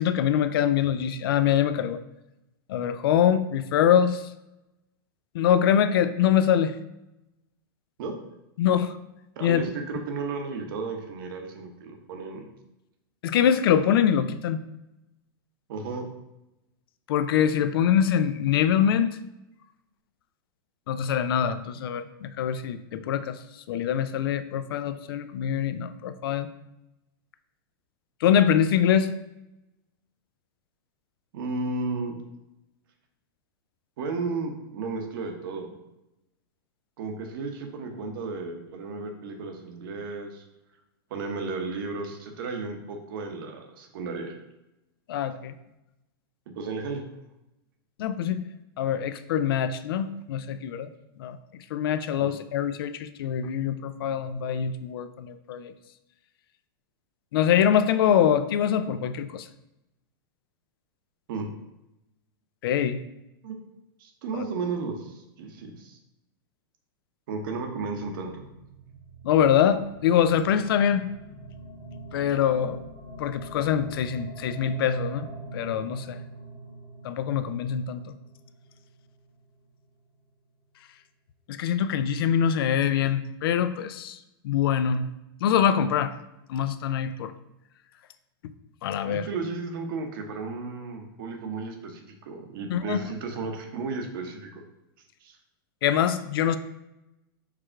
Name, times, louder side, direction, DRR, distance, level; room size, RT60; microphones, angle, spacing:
voice 1, 0.0-2.0 2.7-4.3 5.3-6.7 8.6-9.0 9.4-9.6 13.2-14.6 17.1-19.2 20.9-23.4 23.7-26.5 28.2-29.1 45.1-45.6 48.0-48.4 48.8-50.9 51.2-55.7 57.3-59.5 62.6-63.0 64.3-64.4 69.2-71.1 72.1-72.8 73.2-75.3 75.5-76.2 77.0-78.0 81.5-84.2 84.4-85.1 85.4-86.2 86.5-87.3 88.8-89.3 92.7-93.1 95.8-96.6, left 9 dB, 70° left, 11 dB, 0.4 m, -24 dB
voice 2, 9.4-12.5 15.7-16.1 31.3-32.2 34.0-35.7 37.0-40.4 41.1-44.3 46.5-47.0 52.2-52.3 61.3-61.5 63.4-63.6 64.0-66.0 67.3-68.4 89.0-94.6 95.2-95.4, right 4 dB, 65° right, 4 dB, 0.9 m, -34 dB
sound 1, 67.8-79.6, right 1 dB, 15° left, 1.1 m, -44 dB
4.8 x 2.4 x 4.4 m, 0.92 s
supercardioid pair, 140°, 13 cm